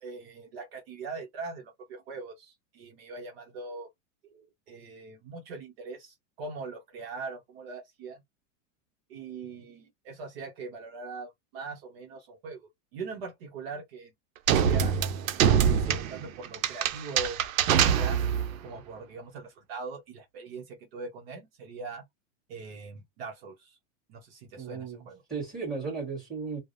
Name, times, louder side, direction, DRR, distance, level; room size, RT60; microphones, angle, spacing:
voice 1, 0.0-3.9 4.2-8.2 9.1-14.1 14.5-15.0 15.5-17.5 17.8-18.3 18.6-22.0 22.5-23.8 24.1-25.2, right 4 dB, 50° right, 0.8 m, -41 dB
sound 1, 14.5-18.6, right 8 dB, 90° right, 0.6 m, -24 dB
voice 2, 24.6-26.6, right 5 dB, ahead, 1.3 m, -35 dB
3.2 x 2.0 x 2.5 m
supercardioid pair, 170°, 39 cm